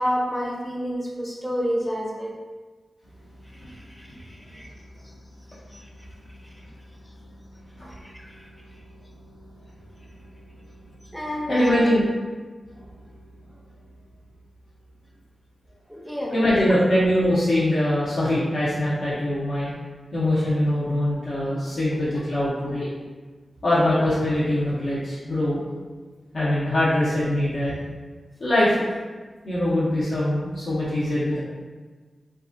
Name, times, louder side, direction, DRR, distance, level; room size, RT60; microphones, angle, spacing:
voice 1, 0.0-2.3 3.7-4.7 5.7-5.8 8.0-8.4 11.1-11.9 15.9-16.3, equal, 5° left, -2 dB, 0.6 m, -29 dB
voice 2, 11.5-12.1 16.3-19.7 20.1-22.9 23.6-25.6 26.3-27.8 28.4-28.8 29.4-31.4, left 1 dB, 65° left, -10 dB, 0.8 m, -22 dB
3.2 x 2.4 x 2.5 m, 1.3 s
wide cardioid pair, 75°, 0 cm